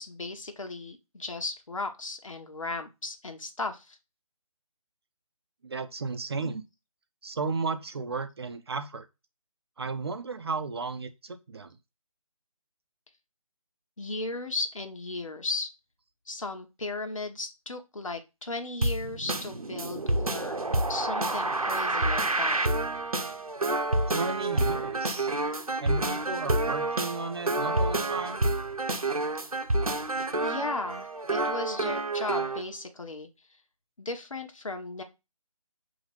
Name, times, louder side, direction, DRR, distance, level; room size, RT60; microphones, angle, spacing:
voice 1, 0.0-4.0 14.0-15.7 16.3-20.5 20.9-22.6 30.4-33.3 34.0-35.0, left 3 dB, 65° left, 1.3 m, -36 dB
voice 2, 5.6-6.6 7.2-9.1 9.8-11.8 24.1-25.3 25.8-28.4, right 4 dB, 45° right, 0.7 m, -34 dB
sound 1, 18.8-32.6, right 2 dB, 80° right, 0.9 m, -28 dB
5.6 x 3.1 x 5.3 m
figure-of-eight pair, 150°, 18 cm